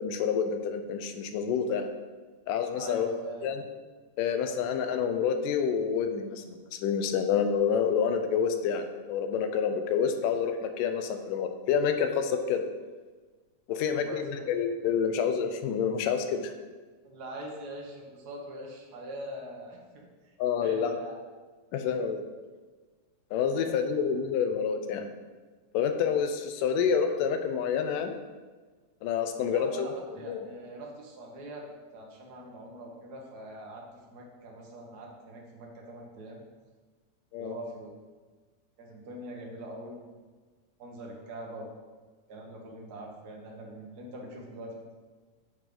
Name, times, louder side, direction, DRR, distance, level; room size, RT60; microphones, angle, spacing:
voice 1, 0.0-1.9 2.5-3.1 3.4-3.6 4.2-6.4 6.7-12.7 13.7-16.5 20.4-21.0 21.7-22.2 23.3-25.1 25.7-28.1 29.0-29.9 30.3-30.4 37.3-37.6, left 7 dB, 80° left, 7 dB, 2.3 m, -28 dB
voice 2, 2.7-3.5 13.7-14.5 17.0-20.3 20.6-21.2 23.5-24.0 29.5-31.6 31.9-33.8 34.1-36.4 37.4-37.9 38.8-40.1 40.8-41.7 42.3-45.0, right 1 dB, 70° right, -1 dB, 0.9 m, -43 dB
9.0 x 6.6 x 3.9 m, 1.4 s
omnidirectional pair, 3.8 m